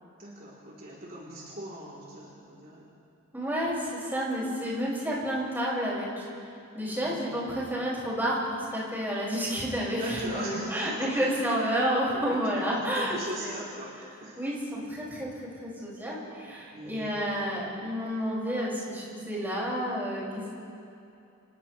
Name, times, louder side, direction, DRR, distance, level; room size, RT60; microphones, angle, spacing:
voice 1, 0.2-2.9 7.0-7.4 9.9-11.1 12.1-14.0 14.2-14.4 16.7-17.2, right 1 dB, 45° right, -7 dB, 3.7 m, -40 dB
voice 2, 3.3-6.2 6.7-8.4 8.7-13.6 14.4-15.3 15.6-20.5, equal, 10° right, -7 dB, 6.4 m, -30 dB
30.0 x 27.0 x 3.4 m, 2.7 s
head